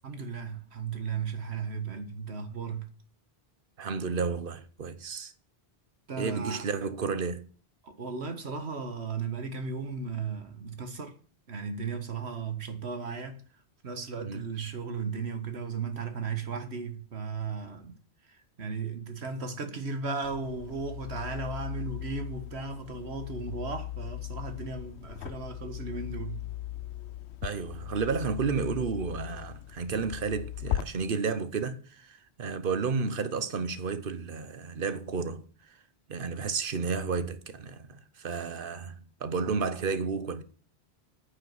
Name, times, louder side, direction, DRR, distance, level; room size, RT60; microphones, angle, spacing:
voice 1, 0.0-2.9 6.1-6.6 7.8-11.1 11.5-13.4 13.8-17.9 18.6-26.4, right 5 dB, 75° right, 1.7 m, -35 dB
voice 2, 3.8-5.3 6.2-7.4 14.2-14.4 27.4-35.5 36.1-40.4, right 5 dB, 55° right, 1.1 m, -32 dB
sound 1, 20.2-30.8, left 13 dB, 80° left, 0.9 m, -38 dB
9.4 x 7.0 x 7.4 m
omnidirectional pair, 1.1 m